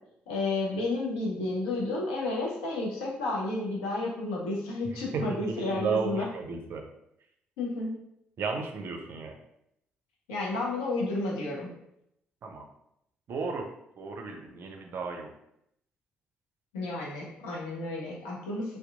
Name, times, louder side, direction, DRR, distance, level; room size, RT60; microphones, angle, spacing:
voice 1, 0.3-6.3 7.6-7.9 10.3-11.7 16.7-18.8, left 2 dB, 70° left, -3 dB, 0.6 m, -31 dB
voice 2, 5.1-6.8 8.4-9.3 12.4-12.7 13.3-13.7 14.0-15.3, right 4 dB, 50° right, 3 dB, 0.4 m, -33 dB
2.7 x 2.2 x 2.3 m, 0.78 s
figure-of-eight pair, 40°, 5 cm